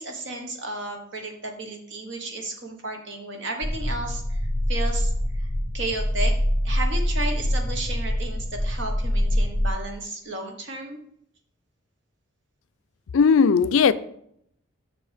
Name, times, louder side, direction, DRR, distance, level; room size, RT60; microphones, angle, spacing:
voice 1, 0.0-4.4 4.7-5.5 5.7-6.3 6.6-11.0, right 2 dB, 60° right, 1.3 m, -33 dB
sound 1, 3.6-9.7, equal, 35° left, 2.1 m, -25 dB
voice 2, 13.1-13.9, left 5 dB, 75° left, 0.4 m, -17 dB
7.2 x 6.2 x 3.4 m
head